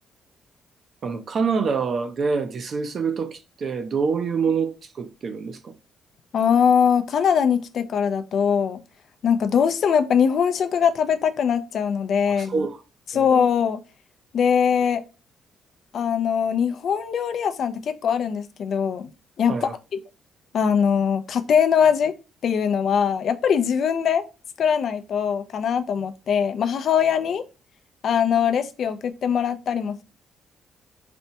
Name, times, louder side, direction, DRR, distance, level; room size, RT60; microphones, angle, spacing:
voice 1, 1.0-5.7 12.3-12.8 13.1-13.3 19.5-19.7, right 5 dB, 50° right, 0.6 m, -26 dB
voice 2, 6.3-8.8 9.2-12.6 13.1-13.8 14.3-15.0 15.9-19.1 19.4-19.7 20.5-22.1 22.4-24.2 24.6-27.4 28.0-30.0, left 7 dB, 60° left, 0.4 m, -21 dB
4.2 x 2.2 x 2.8 m
cardioid pair, 90°, 0 cm